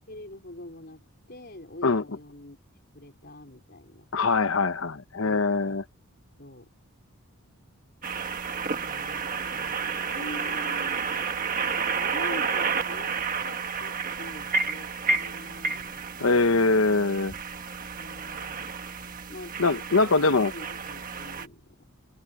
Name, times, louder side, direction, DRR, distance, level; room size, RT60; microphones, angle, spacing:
voice 1, 0.1-1.0 1.3-2.6 2.9-4.0 6.4-6.7 8.6-16.3 18.0-18.7 19.3-20.2 20.5-21.6, left 1 dB, 45° left, 4.7 m, -45 dB
voice 2, 4.1-5.8 16.2-17.3 19.6-20.5, left 3 dB, 65° left, 1.0 m, -23 dB
sound 1, 8.0-21.5, right 5 dB, 40° right, 1.4 m, -31 dB
open air
head